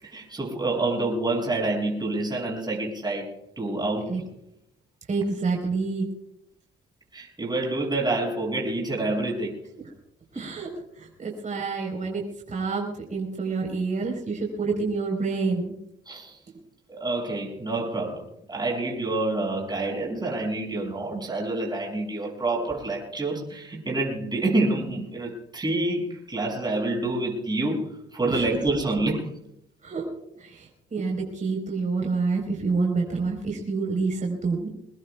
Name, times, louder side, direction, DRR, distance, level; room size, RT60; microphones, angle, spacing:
voice 1, 0.0-4.2 7.1-9.6 10.3-10.5 16.1-16.4 16.9-29.3, right 2 dB, 20° right, -2 dB, 6.5 m, -27 dB
voice 2, 5.1-6.1 10.3-10.7 11.0-15.8 28.3-28.4 29.8-30.0 30.4-34.7, right 4 dB, 40° right, 0 dB, 4.2 m, -28 dB
24.5 x 20.0 x 2.3 m, 0.76 s
cardioid pair, 90°, 20 cm